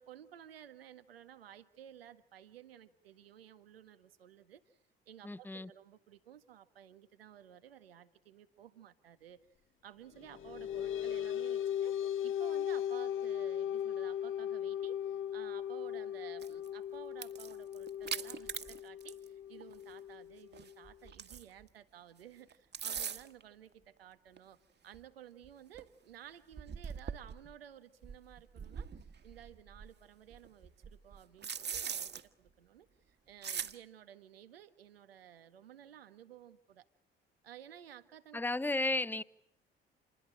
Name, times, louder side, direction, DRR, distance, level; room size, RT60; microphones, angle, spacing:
voice 1, 0.0-4.8 5.1-9.5 9.8-24.6 24.8-32.1 32.4-36.8 37.4-38.4, right 10 dB, 80° right, 11 dB, 1.6 m, -55 dB
voice 2, 5.2-5.7 38.3-39.2, left 2 dB, 5° left, 18 dB, 1.0 m, -33 dB
sound 1, 10.1-21.1, left 10 dB, 45° left, 1.4 m, -38 dB
sound 2, 16.4-16.7 17.1-19.3 19.6-19.7 20.5-21.6 22.5-23.4 24.4-24.5 24.9-25.0 25.4-25.5 25.7-25.8 26.5-27.5 28.0-29.9 30.3-32.2 33.4-33.7, right 7 dB, 35° right, 1.8 m, -41 dB
29.0 x 21.0 x 8.8 m, 0.74 s
figure-of-eight pair, 50°, 29 cm